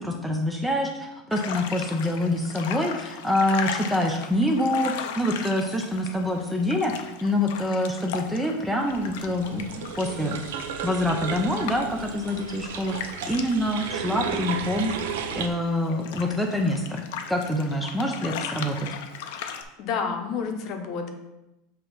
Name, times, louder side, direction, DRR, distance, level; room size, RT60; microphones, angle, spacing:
voice 1, 0.0-10.4 10.8-14.9 15.3-17.0 17.3-18.9, left 1 dB, 5° right, 2 dB, 0.5 m, -26 dB
sound 1, 1.3-19.6, left 7 dB, 70° left, 0.6 m, -38 dB
sound 2, 8.9-15.5, right 7 dB, 90° right, 0.7 m, -34 dB
voice 2, 19.4-21.1, left 6 dB, 40° left, 4 dB, 0.9 m, -30 dB
7.1 x 2.9 x 5.4 m, 0.92 s
supercardioid pair, 160°, 0 cm